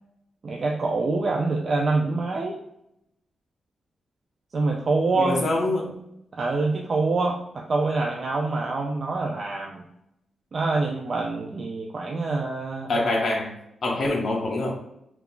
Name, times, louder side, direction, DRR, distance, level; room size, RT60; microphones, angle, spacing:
voice 1, 0.4-2.6 4.5-5.4 6.3-9.8 10.5-12.9, right 3 dB, 40° right, -1 dB, 0.3 m, -25 dB
voice 2, 5.2-6.0 12.9-13.6 13.8-14.8, left 2 dB, 45° left, -2 dB, 0.5 m, -25 dB
2.3 x 2.3 x 3.6 m, 0.80 s
wide cardioid pair, 150°, 0 cm